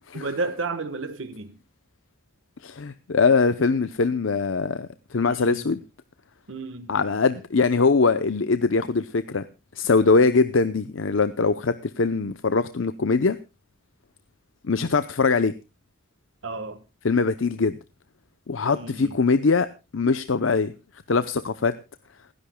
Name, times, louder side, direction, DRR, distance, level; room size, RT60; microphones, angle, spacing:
voice 1, 0.1-1.6 5.3-5.6 6.5-7.0 16.4-16.8 18.7-19.2, right 3 dB, 70° right, 1.4 m, -32 dB
voice 2, 2.6-5.8 6.9-9.4 9.8-13.4 14.7-15.5 17.0-17.8 18.5-19.7 19.9-20.7 21.1-21.7, left 4 dB, 70° left, 0.7 m, -22 dB
28.5 x 10.5 x 2.2 m
head